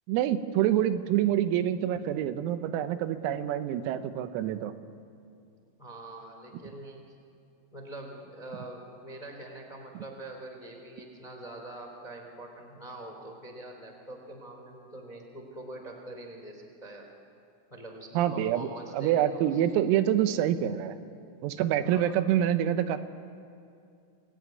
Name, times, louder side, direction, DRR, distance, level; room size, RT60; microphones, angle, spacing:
voice 1, 0.1-4.7 18.2-18.7 18.9-21.0 21.4-23.0, right 11 dB, 85° right, 10 dB, 3.8 m, -26 dB
voice 2, 5.8-7.0 7.7-17.1 17.7-19.9 21.8-22.2, right 1 dB, 10° left, 3 dB, 2.2 m, -44 dB
28.0 x 20.5 x 9.7 m, 2.4 s
omnidirectional pair, 6.0 m